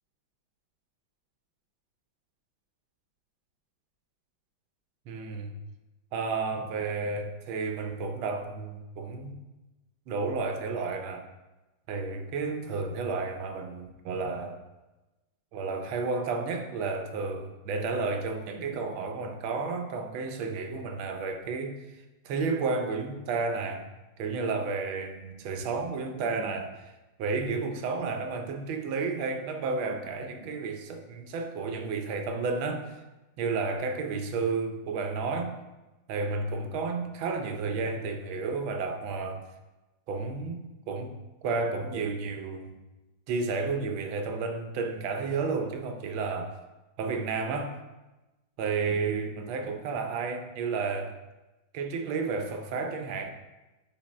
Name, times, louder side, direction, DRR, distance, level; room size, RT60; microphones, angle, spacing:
voice 1, 5.1-5.5 6.1-9.4 10.1-11.3 11.9-14.6 15.5-21.8 22.2-23.9 24.2-26.9 27.2-33.0 33.4-35.5 36.1-39.4 40.1-41.1 41.4-42.7 43.3-46.6 47.0-47.7 48.6-51.2 51.7-53.3, right 4 dB, 85° right, 5 dB, 1.5 m, -32 dB
8.5 x 4.8 x 3.1 m, 1.1 s
omnidirectional pair, 2.2 m